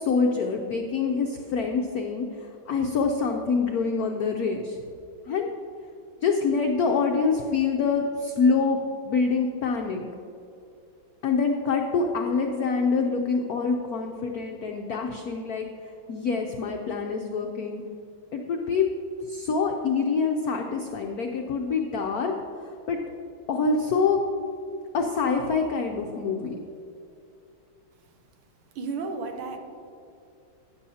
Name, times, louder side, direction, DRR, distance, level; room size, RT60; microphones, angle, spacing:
voice 1, 0.0-4.8 5.3-5.5 6.2-10.0 11.2-15.7 16.1-17.8 18.3-18.9 19.3-22.3 22.9-23.0 23.5-24.2 24.9-26.6, left 5 dB, 80° left, 2 dB, 0.8 m, -25 dB
voice 2, 28.8-29.6, right 4 dB, 85° right, 5 dB, 1.8 m, -32 dB
12.5 x 9.6 x 2.8 m, 2.6 s
omnidirectional pair, 2.3 m